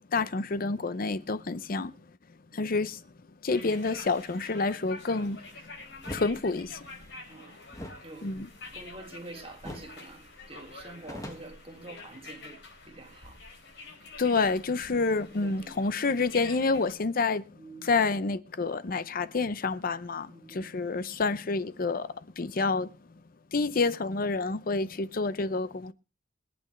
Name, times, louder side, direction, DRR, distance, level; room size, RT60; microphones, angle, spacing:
voice 1, 0.1-1.9 2.5-3.0 3.4-5.4 6.1-6.8 8.2-8.5 14.2-17.4 17.8-22.9 23.5-25.9, left 3 dB, 50° left, 0.6 m, -28 dB
sound 1, 3.5-16.9, left 3 dB, 65° left, 4.5 m, -47 dB
sound 2, 6.0-6.3 7.7-9.2 9.6-10.0 10.3-10.4 10.7-12.3, left 1 dB, 20° left, 1.8 m, -43 dB
voice 2, 7.3-7.6 8.0-8.3 8.7-13.4 15.3-15.8 17.6-17.9 20.2-20.7, right 2 dB, 30° right, 2.1 m, -47 dB
24.5 x 8.8 x 3.2 m
head